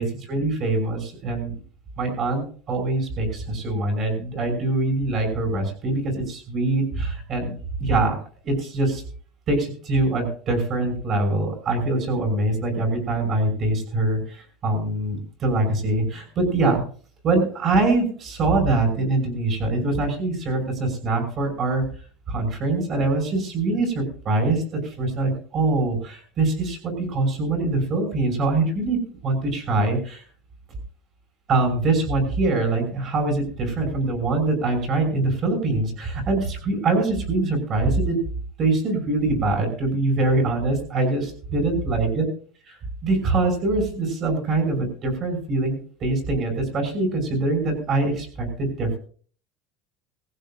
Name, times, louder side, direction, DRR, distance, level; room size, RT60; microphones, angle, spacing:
voice 1, 0.3-1.5 2.0-6.0 6.3-7.5 7.8-8.1 8.4-9.0 9.5-16.8 17.2-21.8 22.3-29.0 29.2-30.2 31.5-38.2 38.6-42.3 43.0-49.0, right 2 dB, 30° right, 4 dB, 5.9 m, -23 dB
19.5 x 15.5 x 2.6 m, 0.43 s
cardioid pair, 175°, 0 cm